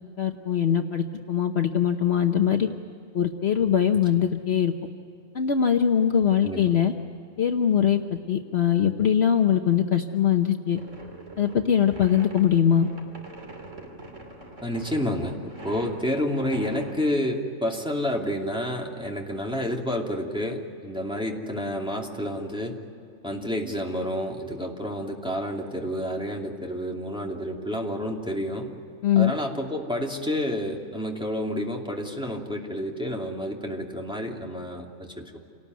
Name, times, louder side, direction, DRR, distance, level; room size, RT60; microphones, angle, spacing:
voice 1, 0.2-2.7 3.1-4.7 5.3-6.9 7.4-10.8 11.4-12.9 29.0-29.3, left 8 dB, 55° left, 5 dB, 1.1 m, -22 dB
voice 2, 6.4-6.7 14.6-22.8 23.2-28.7 29.2-35.4, equal, 5° right, -1 dB, 2.7 m, -29 dB
sound 1, 10.7-17.0, right 2 dB, 65° right, 3.3 m, -43 dB
28.0 x 19.0 x 9.4 m, 2.5 s
omnidirectional pair, 1.4 m